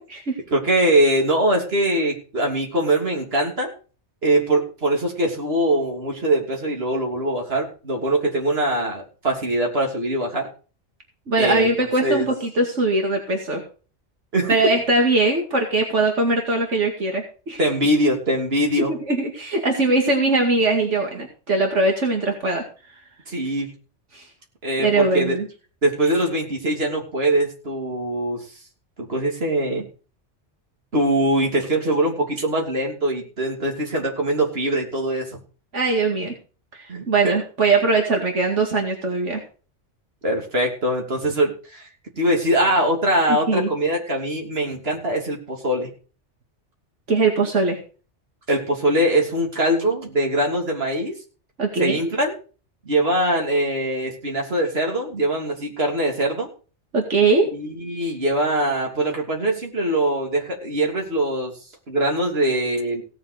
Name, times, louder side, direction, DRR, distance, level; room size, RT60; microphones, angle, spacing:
voice 1, 0.5-3.7 4.2-10.5 11.4-12.3 14.3-14.6 17.6-18.9 23.3-23.7 24.6-25.4 25.8-28.4 29.0-29.9 30.9-35.4 36.9-37.1 40.2-41.9 42.2-45.9 48.5-51.2 51.8-52.4 52.8-56.5 57.5-61.5 61.9-63.0, right 1 dB, 55° right, 0 dB, 3.2 m, -22 dB
voice 2, 11.3-13.6 14.5-17.6 18.9-22.6 24.1-24.3 24.8-25.5 35.7-36.3 36.7-39.4 43.3-43.7 47.1-47.8 51.6-52.1 56.9-57.5, right 3 dB, 80° right, 2 dB, 2.5 m, -21 dB
17.0 x 7.4 x 5.1 m, 0.37 s
omnidirectional pair, 1.2 m